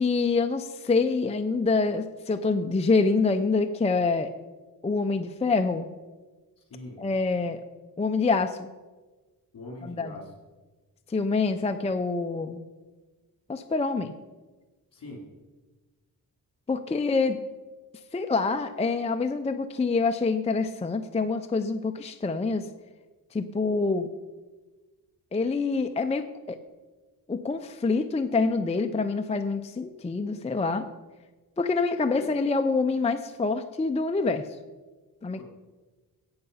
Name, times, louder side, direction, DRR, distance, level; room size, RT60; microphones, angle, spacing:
voice 1, 0.0-4.3 4.8-5.9 7.0-7.6 8.0-8.7 9.8-10.1 11.1-12.6 13.5-14.1 16.7-17.4 18.1-22.7 23.3-24.1 25.3-26.6 27.3-30.9 31.6-34.5 35.2-35.4, left 4 dB, 20° left, 7 dB, 0.4 m, -26 dB
voice 2, 6.6-7.0 9.5-10.3 14.9-15.2 32.2-32.3 35.3-35.4, left 1 dB, 60° left, -1 dB, 3.3 m, -42 dB
16.5 x 5.7 x 5.5 m, 1.3 s
wide cardioid pair, 155°, 37 cm